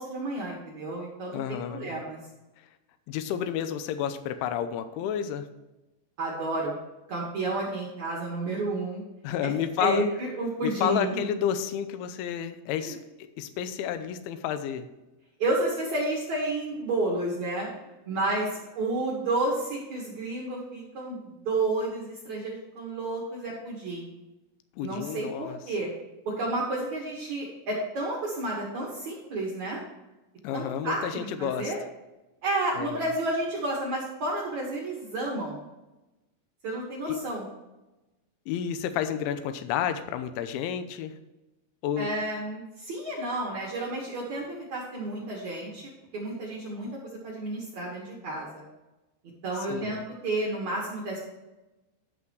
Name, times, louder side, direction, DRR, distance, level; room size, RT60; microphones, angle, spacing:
voice 1, 0.0-2.2 6.2-6.8 7.1-9.0 9.4-9.5 9.8-11.2 12.8-12.9 15.4-17.7 18.1-24.1 24.8-25.9 26.3-29.8 30.5-31.8 32.4-35.6 36.6-37.5 42.0-48.6 49.4-51.2, right 2 dB, 60° right, -4 dB, 1.9 m, -31 dB
voice 2, 1.3-1.9 3.1-5.5 9.2-10.0 10.6-14.9 24.8-25.6 30.4-31.7 32.8-33.1 37.1-37.2 38.5-41.1 41.8-42.1 49.7-50.1, left 9 dB, 80° left, 9 dB, 2.9 m, -30 dB
12.0 x 6.1 x 4.7 m, 1.0 s
omnidirectional pair, 6.0 m